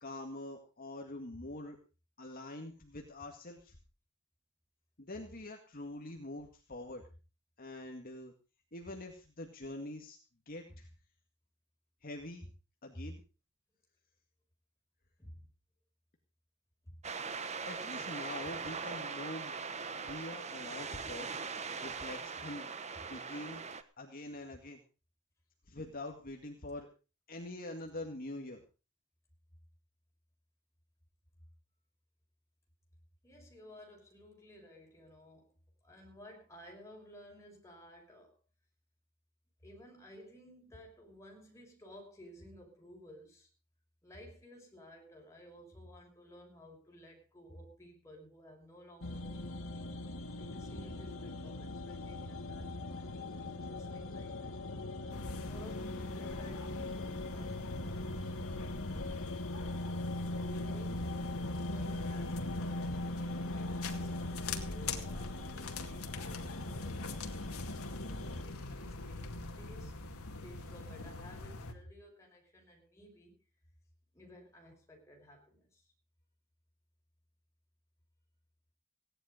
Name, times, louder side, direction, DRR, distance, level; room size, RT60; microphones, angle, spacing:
voice 1, 0.0-1.8 2.2-3.8 5.0-7.0 7.6-8.3 8.7-10.2 10.5-10.9 12.0-12.4 12.8-13.2 17.7-19.5 20.0-21.4 21.8-22.7 23.1-23.6 24.0-24.8 25.7-26.9 27.3-28.6, left 1 dB, 40° left, 2 dB, 2.1 m, -45 dB
sound 1, 17.0-23.8, right 5 dB, 30° right, 1.1 m, -41 dB
voice 2, 33.2-35.5 35.8-38.4 39.6-43.5 44.0-49.9 50.4-54.5 55.4-58.4 60.1-61.2 61.5-67.3 67.6-70.0 70.4-73.3 74.1-75.9, equal, 15° left, 0 dB, 5.7 m, -54 dB
sound 2, 49.0-68.4, left 2 dB, 65° left, 1.9 m, -40 dB
sound 3, 55.1-71.7, left 3 dB, 85° left, 2.3 m, -43 dB
17.0 x 11.5 x 5.1 m, 0.33 s
head